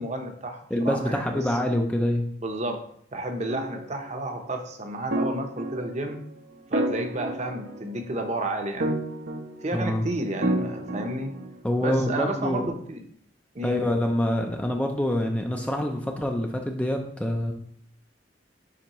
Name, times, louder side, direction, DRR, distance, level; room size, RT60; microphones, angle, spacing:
voice 1, 0.0-1.4 2.4-2.8 3.1-6.2 6.7-9.0 9.6-11.3 11.8-13.0 13.5-13.9, right 1 dB, 40° right, 4 dB, 0.8 m, -31 dB
voice 2, 0.7-2.3 9.7-10.0 11.6-12.7 13.6-17.5, left 1 dB, 5° left, 2 dB, 0.4 m, -26 dB
sound 1, 3.5-4.1 5.1-6.2 6.7-8.1 8.8-9.9 10.4-11.5, right 1 dB, 70° right, 0.8 m, -30 dB
10.0 x 3.5 x 3.0 m, 0.64 s
head